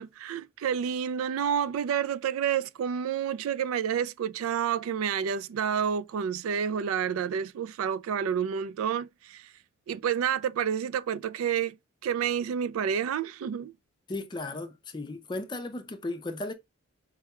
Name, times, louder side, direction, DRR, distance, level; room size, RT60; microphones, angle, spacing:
voice 1, 0.0-9.5 9.9-11.8 12.0-13.7, right 8 dB, 90° right, 0.3 m, -29 dB
voice 2, 14.1-16.5, left 2 dB, 20° left, 0.5 m, -35 dB
4.6 x 2.2 x 2.9 m
head